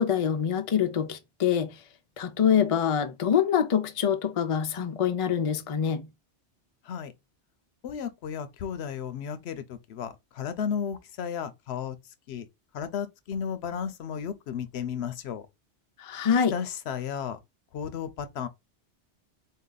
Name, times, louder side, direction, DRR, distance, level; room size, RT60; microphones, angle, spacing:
voice 1, 0.0-1.7 2.2-6.1 16.0-16.5, left 8 dB, 50° left, 0.4 m, -25 dB
voice 2, 7.8-12.0 12.3-12.5 12.7-15.5 16.5-17.4 17.7-18.5, left 7 dB, 70° left, 0.8 m, -34 dB
4.0 x 2.7 x 3.8 m
omnidirectional pair, 1.2 m